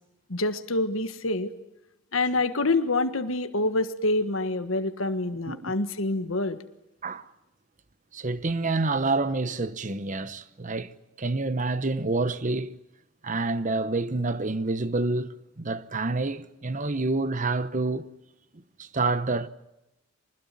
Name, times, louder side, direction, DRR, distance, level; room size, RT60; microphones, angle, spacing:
voice 1, 0.3-1.5 2.1-6.6, left 2 dB, 70° left, 1.5 m, -26 dB
voice 2, 8.1-10.9 11.2-12.7 13.2-18.1 18.8-19.5, right 3 dB, 35° right, 1.0 m, -28 dB
24.5 x 20.5 x 9.4 m
head